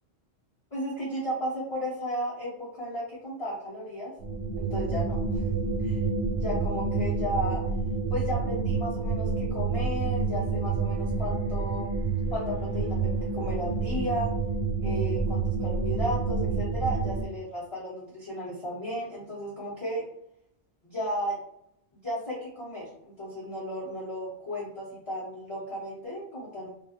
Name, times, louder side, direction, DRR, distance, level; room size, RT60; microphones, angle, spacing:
voice 1, 0.7-4.1 4.6-5.4 5.8-6.0 6.4-7.7 8.1-11.9 12.3-14.3 14.8-20.0 20.8-21.4 22.0-26.7, equal, 30° left, -8 dB, 0.8 m, -34 dB
Space Hulk, 4.2-17.2, right 4 dB, 75° right, 0.8 m, -28 dB
2.4 x 2.3 x 2.7 m, 0.73 s
omnidirectional pair, 1.1 m